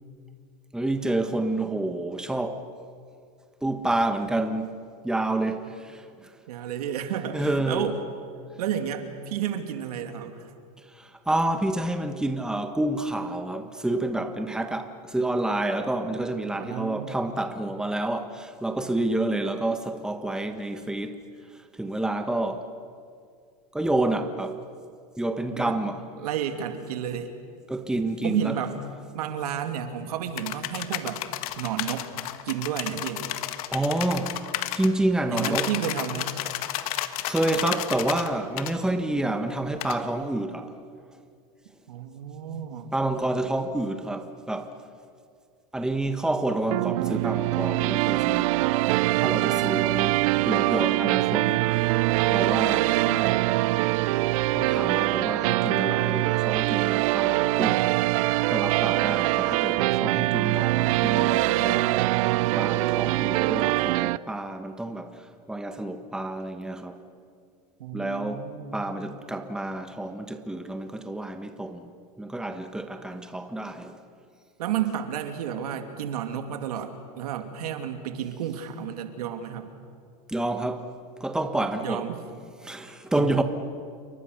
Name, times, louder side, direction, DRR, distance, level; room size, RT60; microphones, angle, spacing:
voice 1, 0.7-2.6 3.6-4.7 5.0-6.3 7.3-7.9 10.9-21.2 21.8-22.7 23.7-24.6 25.2-26.0 27.7-28.6 33.7-34.4 34.7-35.7 36.5-36.9 37.3-40.8 42.9-44.7 45.7-48.5 49.1-51.9 52.3-53.4 54.5-57.9 58.5-67.0 67.9-68.4 68.7-71.9 72.2-74.0 80.3-80.9 81.2-82.1 82.6-83.4, right 2 dB, 5° right, 1.5 m, -29 dB
voice 2, 6.5-8.0 8.6-10.5 16.6-17.2 25.5-25.8 26.2-27.3 28.2-28.8 29.1-31.2 31.6-32.1 32.4-33.3 35.3-36.3 41.9-42.9 67.8-68.8 74.6-79.7 81.8-82.2 83.1-83.4, right 9 dB, 85° right, 2.7 m, -31 dB
sound 1, 30.4-34.9 35.4-38.3 38.6-38.7 39.8-40.0, left 14 dB, 70° left, 1.6 m, -32 dB
sound 2, 46.7-64.2, right 18 dB, 65° right, 0.6 m, -23 dB
29.0 x 23.5 x 6.7 m
supercardioid pair, 130°, 19 cm